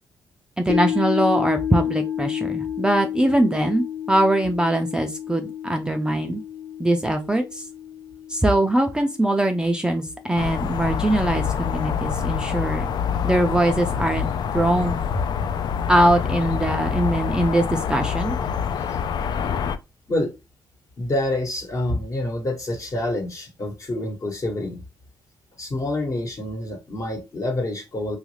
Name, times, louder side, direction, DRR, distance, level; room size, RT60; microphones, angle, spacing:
voice 1, 0.6-6.4 6.8-7.7 8.3-12.9 13.2-14.3 14.5-15.0 15.9-18.4, right 1 dB, 10° right, 0.4 m, -22 dB
sound 1, 0.7-11.1 11.4-11.5, left 10 dB, 90° left, 1.3 m, -31 dB
sound 2, 10.4-19.8, left 7 dB, 60° left, 0.3 m, -26 dB
voice 2, 21.0-24.8 25.6-28.2, left 1 dB, 40° left, 1.2 m, -27 dB
3.1 x 2.4 x 3.2 m
cardioid pair, 90°, 8 cm